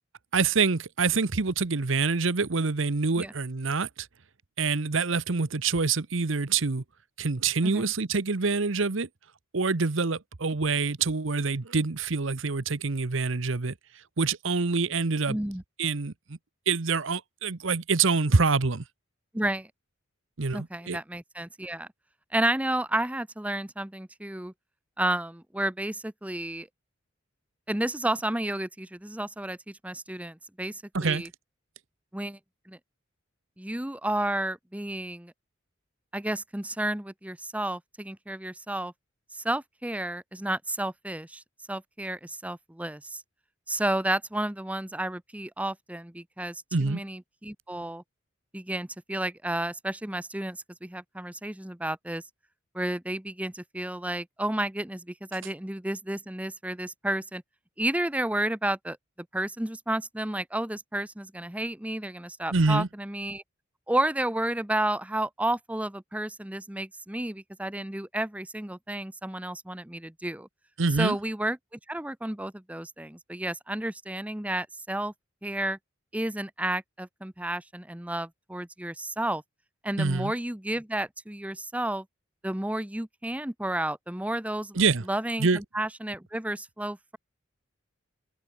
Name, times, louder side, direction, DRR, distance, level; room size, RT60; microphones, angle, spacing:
voice 1, 0.3-4.1 4.6-6.8 7.2-9.1 9.5-13.7 14.2-15.4 15.8-16.4 16.7-18.8 20.4-21.0 30.9-31.2 46.7-47.0 62.5-62.9 70.8-71.2 80.0-80.3 84.7-85.0 85.4-85.6, right 4 dB, 70° right, 1.0 m, -26 dB
voice 2, 15.3-15.6 19.3-19.7 20.5-21.9 22.3-24.5 25.0-26.7 27.7-31.3 32.1-32.4 32.7-32.8 33.6-35.3 36.1-38.9 39.3-41.4 41.7-43.2 43.7-48.0 48.5-52.2 52.7-57.4 57.8-59.0 59.3-63.4 63.9-70.5 71.0-71.6 71.9-75.1 75.4-75.8 76.1-79.4 79.8-82.0 82.4-84.8 85.1-87.2, right 1 dB, 5° right, 0.8 m, -31 dB
head